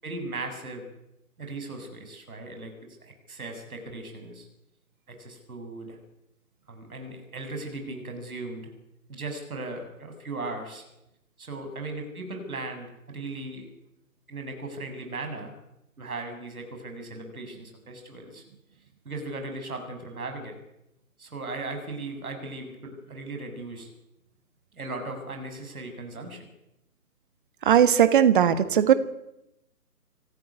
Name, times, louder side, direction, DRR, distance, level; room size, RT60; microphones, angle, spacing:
voice 1, 0.0-0.8 1.4-4.5 5.1-6.0 6.7-8.7 9.1-10.8 11.4-13.7 14.3-15.5 16.0-18.4 19.0-20.6 21.2-23.9 24.7-26.4, right 2 dB, 65° right, 5 dB, 7.5 m, -37 dB
voice 2, 27.6-28.9, right 9 dB, 35° right, 12 dB, 1.6 m, -18 dB
26.5 x 14.5 x 9.8 m, 0.87 s
figure-of-eight pair, 145°, 46 cm